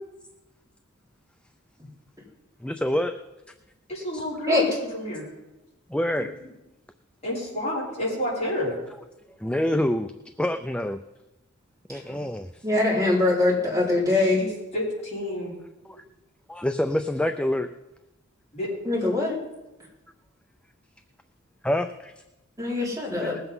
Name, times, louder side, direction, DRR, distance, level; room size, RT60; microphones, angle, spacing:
voice 1, 2.6-3.1 4.1-4.2 5.9-6.3 9.4-10.1 10.4-11.0 11.9-12.6 16.5-17.7 21.6-22.1 23.2-23.4, left 1 dB, 5° left, 8 dB, 0.4 m, -26 dB
voice 2, 3.9-5.2 6.2-6.3 7.2-8.8 14.1-15.5 18.5-18.7, left 1 dB, 30° left, -7 dB, 5.6 m, -30 dB
voice 3, 12.6-14.4 18.8-19.4 22.6-23.3, left 2 dB, 15° right, -5 dB, 4.1 m, -22 dB
20.0 x 8.0 x 5.5 m, 0.99 s
head